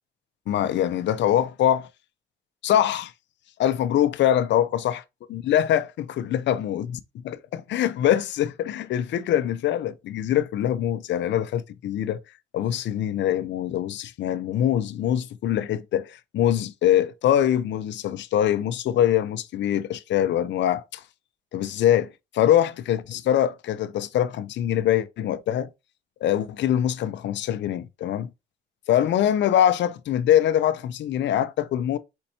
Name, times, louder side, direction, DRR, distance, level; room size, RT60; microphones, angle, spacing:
voice 1, 0.5-1.9 2.6-3.1 3.6-5.0 5.3-6.9 7.2-12.2 12.5-21.0 21.5-25.7 26.2-28.3 28.9-32.0, left 11 dB, 65° left, 0.5 m, -23 dB
4.3 x 4.2 x 2.7 m
cardioid pair, 90°, 20 cm